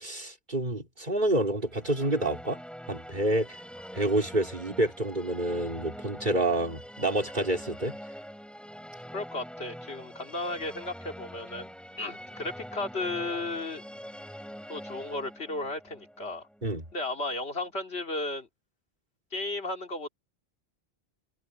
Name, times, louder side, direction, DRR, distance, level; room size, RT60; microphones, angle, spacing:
voice 1, 0.0-2.6 2.9-3.6 3.9-8.0 16.6-16.8, right 1 dB, 50° right, 4.1 m, -28 dB
Musical instrument, 1.6-17.1, equal, ahead, 4.0 m, -44 dB
voice 2, 9.1-11.7 12.0-13.8 14.7-16.4 16.9-18.5 19.3-20.1, left 2 dB, 80° left, 3.0 m, -34 dB
omnidirectional pair, 1.1 m